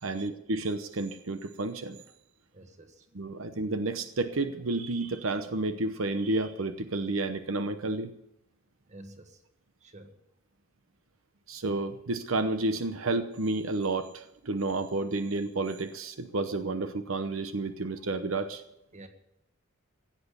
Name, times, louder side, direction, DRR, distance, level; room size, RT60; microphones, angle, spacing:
voice 1, 0.0-2.0 3.1-8.1 11.5-18.6, right 2 dB, 80° right, 9 dB, 0.9 m, -31 dB
voice 2, 2.5-3.1 8.9-9.4 9.8-10.2 18.9-19.1, right 1 dB, 35° right, 6 dB, 1.6 m, -50 dB
16.0 x 8.4 x 8.3 m, 0.81 s
head